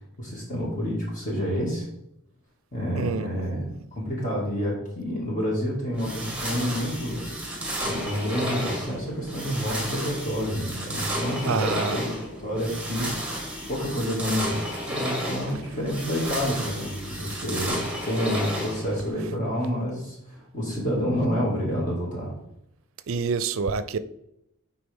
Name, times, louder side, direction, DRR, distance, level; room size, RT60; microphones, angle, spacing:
voice 1, 0.2-1.9 2.7-22.3, equal, 35° left, 2.2 m, -29 dB
voice 2, 3.0-3.3 11.4-12.0 17.3-17.4 23.1-24.0, right 5 dB, 70° right, 0.4 m, -27 dB
sound 1, 5.9-19.1, equal, 5° right, 1.4 m, -32 dB
8.4 x 4.7 x 3.5 m
head